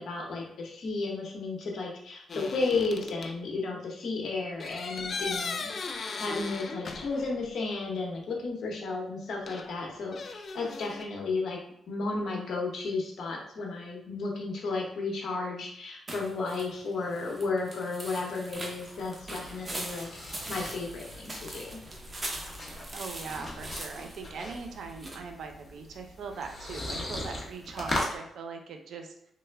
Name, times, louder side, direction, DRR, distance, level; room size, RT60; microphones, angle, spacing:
voice 1, 0.0-5.7 6.2-11.6 11.9-21.8, left 3 dB, 70° left, -1 dB, 0.8 m, -33 dB
sound 1, 2.3-3.3 4.6-7.5 7.7-7.8 9.5-11.1, left 4 dB, 50° left, 0.3 m, -38 dB
sound 2, 16.1-25.2, right 1 dB, 25° right, 0.7 m, -42 dB
sound 3, 18.5-28.2, left 1 dB, 35° left, 0.8 m, -39 dB
voice 2, 22.9-29.1, right 5 dB, 75° right, 4 dB, 0.5 m, -40 dB
3.2 x 2.0 x 3.3 m, 0.74 s
cardioid pair, 90°, 0 cm